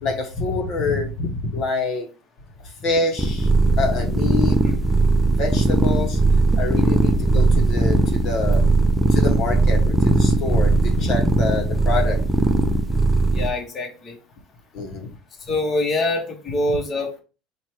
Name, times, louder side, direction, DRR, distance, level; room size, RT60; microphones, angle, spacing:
voice 1, 0.0-2.1 2.6-4.6 5.1-8.7 9.1-12.2 14.7-15.1, left 3 dB, 50° left, 1 dB, 1.0 m, -26 dB
sound 1, 3.2-13.5, right 2 dB, 10° right, 0.5 m, -19 dB
voice 2, 13.3-14.2 15.5-17.2, left 2 dB, 30° left, 1 dB, 1.1 m, -24 dB
4.4 x 2.5 x 4.7 m, 0.34 s
cardioid pair, 135°, 0 cm